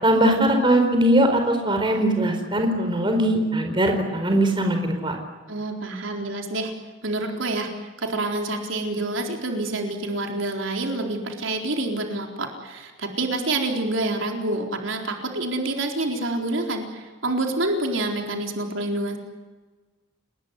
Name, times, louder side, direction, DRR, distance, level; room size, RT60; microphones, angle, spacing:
voice 1, 0.0-5.2, right 1 dB, 25° right, 4 dB, 4.4 m, -20 dB
voice 2, 5.5-6.7 7.0-7.7 8.0-19.2, right 2 dB, 75° right, 2 dB, 4.2 m, -27 dB
30.0 x 20.0 x 9.8 m, 1.3 s
head